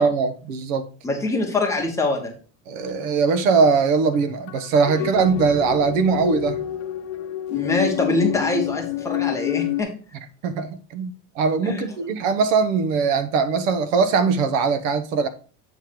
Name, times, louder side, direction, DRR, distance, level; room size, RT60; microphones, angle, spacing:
voice 1, 0.0-0.9 2.7-6.6 10.4-15.3, right 5 dB, 80° right, 1.0 m, -21 dB
voice 2, 1.0-2.3 5.0-5.1 7.5-9.9 11.6-11.8, left 2 dB, 10° left, 0.9 m, -24 dB
sound 1, 2.8-3.1 3.8-3.9 4.1-4.2 4.5-9.8, left 14 dB, 75° left, 0.7 m, -28 dB
7.9 x 3.1 x 5.0 m
cardioid pair, 180°, 38 cm